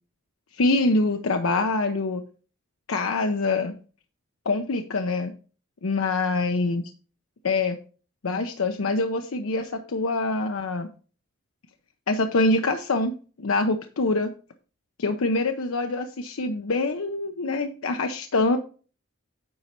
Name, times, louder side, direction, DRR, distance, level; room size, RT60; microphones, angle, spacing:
voice 1, 0.6-2.2 2.9-3.7 4.5-5.3 5.8-6.9 7.4-7.8 8.2-10.9 12.1-13.1 13.4-14.3 15.0-18.6, left 2 dB, 80° left, 6 dB, 0.7 m, -25 dB
9.4 x 4.2 x 5.2 m, 0.38 s
head